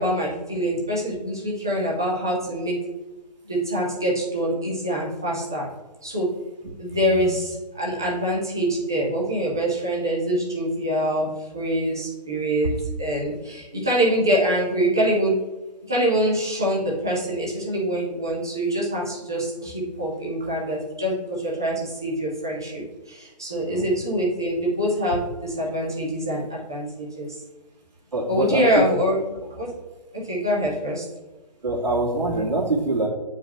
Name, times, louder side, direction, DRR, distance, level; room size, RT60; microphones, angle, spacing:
voice 1, 0.0-2.8 3.5-5.6 6.0-6.3 6.8-11.3 11.5-12.7 13.0-15.3 15.9-27.3 28.3-29.2 29.5-29.7 30.2-31.0, equal, 5° right, -4 dB, 0.3 m, -25 dB
voice 2, 6.9-7.3 23.7-23.9 28.1-28.6 31.6-33.1, right 2 dB, 75° right, -9 dB, 2.1 m, -24 dB
8.0 x 4.8 x 3.3 m, 1.1 s
figure-of-eight pair, 160°, 21 cm